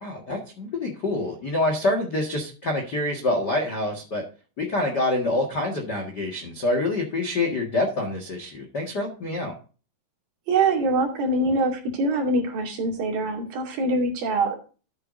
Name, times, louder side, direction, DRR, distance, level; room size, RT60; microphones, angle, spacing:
voice 1, 0.0-4.2 4.6-9.5, left 2 dB, 45° left, 2 dB, 1.3 m, -26 dB
voice 2, 10.5-14.6, right 2 dB, 60° right, 0 dB, 4.1 m, -24 dB
13.5 x 8.6 x 2.7 m, 0.36 s
omnidirectional pair, 4.7 m